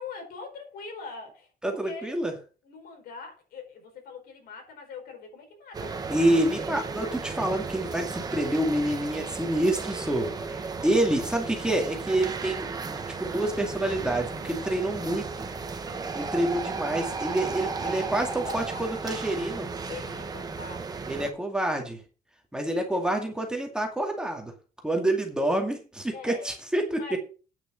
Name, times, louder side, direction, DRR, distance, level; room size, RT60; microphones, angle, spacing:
voice 1, 0.0-2.1 2.6-6.0 17.5-18.9 19.9-20.9 21.6-21.7 22.7-23.2 23.6-23.8 26.1-26.5 26.9-27.2, left 4 dB, 80° left, 3 dB, 4.8 m, -43 dB
voice 2, 1.6-2.3 6.1-15.5 16.1-19.7 21.1-22.0 22.5-24.5 24.8-27.0, right 1 dB, 5° right, 2 dB, 2.3 m, -27 dB
sound 1, 5.7-21.3, right 4 dB, 25° right, 1.2 m, -35 dB
9.3 x 7.4 x 6.3 m, 0.36 s
cardioid pair, 160°, 15 cm